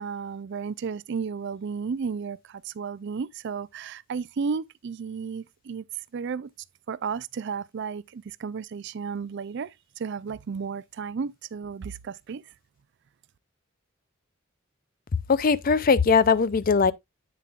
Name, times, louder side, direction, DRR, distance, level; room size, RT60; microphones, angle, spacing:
voice 1, 0.0-5.8 6.1-6.5 6.9-12.4, right 5 dB, 60° right, 0.4 m, -33 dB
voice 2, 15.3-16.9, left 5 dB, 45° left, 0.5 m, -20 dB
8.9 x 6.8 x 2.4 m
head